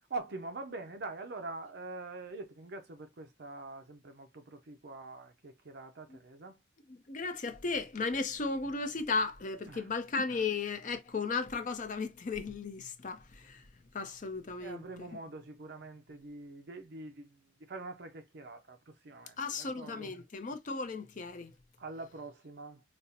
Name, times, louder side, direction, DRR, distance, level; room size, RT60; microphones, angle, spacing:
voice 1, 0.1-6.6 9.7-9.9 14.6-20.1 21.8-22.8, right 3 dB, 60° right, 0.5 m, -44 dB
voice 2, 6.9-13.7 13.9-15.1 19.4-21.5, left 4 dB, 45° left, 0.5 m, -35 dB
5.1 x 2.1 x 2.8 m
head